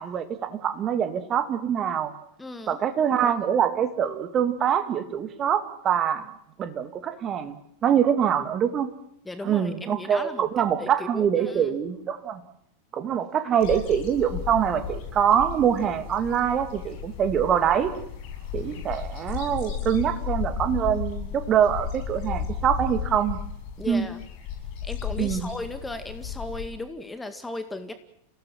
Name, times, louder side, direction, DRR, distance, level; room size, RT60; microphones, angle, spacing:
voice 1, 0.0-2.1 2.7-6.2 6.6-7.6 7.8-8.9 9.4-12.4 12.9-17.9 18.5-23.4 23.9-24.1 25.2-25.4, right 8 dB, 30° right, 9 dB, 2.6 m, -24 dB
voice 2, 2.4-2.8 9.3-10.5 10.8-11.8 23.8-24.2 24.8-27.9, left 2 dB, 10° left, 9 dB, 2.0 m, -36 dB
sound 1, 13.6-26.7, left 7 dB, 45° left, 7.5 m, -34 dB
29.0 x 18.0 x 7.7 m, 0.73 s
figure-of-eight pair, 90°, 0 cm